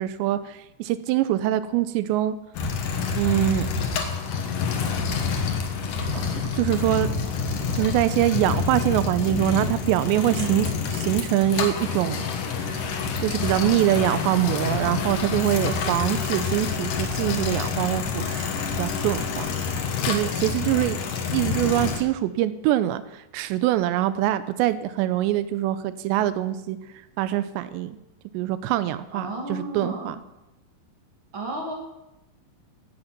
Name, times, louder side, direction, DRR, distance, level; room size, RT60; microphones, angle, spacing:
voice 1, 0.0-2.4 3.1-3.7 6.1-7.1 7.8-10.7 11.0-12.3 12.6-19.5 20.0-21.0 21.3-26.8 27.2-28.0 28.3-30.2, right 13 dB, 85° right, 14 dB, 2.8 m, -24 dB
sound 1, 2.5-22.0, left 5 dB, 60° left, 2.4 m, -27 dB
voice 2, 29.1-30.1 31.3-31.7, right 3 dB, 35° right, -1 dB, 2.3 m, -32 dB
17.0 x 7.9 x 5.9 m, 0.94 s
omnidirectional pair, 5.1 m